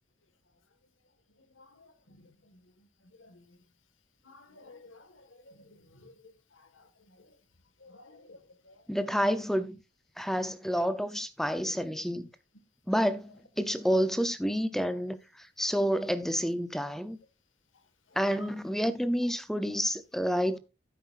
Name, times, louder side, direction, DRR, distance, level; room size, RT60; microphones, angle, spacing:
voice 1, 1.6-2.3 3.2-3.4 4.3-5.7 5.9-6.1 6.8-6.9 7.8-8.8, left 2 dB, 90° left, 1.8 m, -54 dB
voice 2, 8.9-9.8 10.2-12.3 12.9-13.3 13.6-17.2 18.2-20.6, equal, ahead, 0.6 m, -29 dB
12.0 x 10.0 x 2.5 m
head